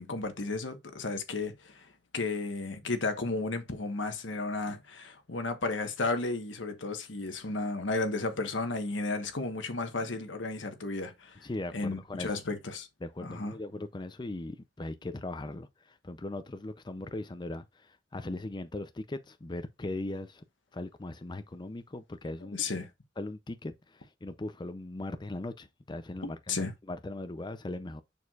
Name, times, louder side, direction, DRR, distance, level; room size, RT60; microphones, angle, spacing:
voice 1, 0.0-11.4 11.7-12.9 13.2-13.5 22.5-22.9 26.2-26.7, left 3 dB, 85° left, 1.2 m, -33 dB
voice 2, 11.4-12.3 13.0-20.4 20.7-22.6 23.2-28.0, left 2 dB, 25° left, 0.5 m, -39 dB
6.9 x 6.4 x 2.4 m
head